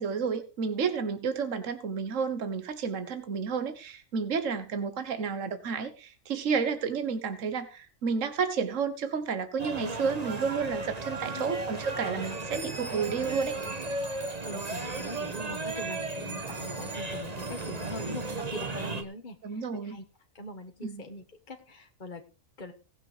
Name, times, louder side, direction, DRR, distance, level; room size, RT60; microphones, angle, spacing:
voice 1, 0.0-13.6 19.4-20.0 20.8-21.0, right 6 dB, 60° right, 10 dB, 1.6 m, -31 dB
sound 1, 9.6-19.0, right 2 dB, 25° right, 1.6 m, -35 dB
voice 2, 14.4-20.0 20.3-22.2 22.6-22.7, left 1 dB, 35° left, 4 dB, 1.5 m, -42 dB
18.5 x 6.8 x 4.9 m, 0.34 s
omnidirectional pair, 1.5 m